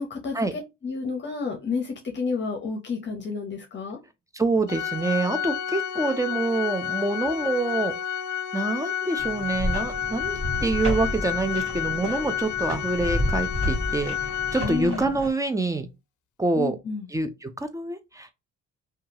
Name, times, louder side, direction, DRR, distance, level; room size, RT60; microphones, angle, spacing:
voice 1, 0.0-4.0 14.6-15.1 16.6-17.1, left 4 dB, 40° left, 0.7 m, -30 dB
voice 2, 4.3-7.9 8.5-15.9 16.4-16.8 17.1-18.3, right 3 dB, 10° right, 0.4 m, -26 dB
Organ, 4.7-15.3, left 9 dB, 75° left, 0.5 m, -30 dB
sound 1, 9.2-15.3, equal, 45° right, 1.4 m, -31 dB
2.8 x 2.3 x 2.7 m
cardioid pair, 90°, 30 cm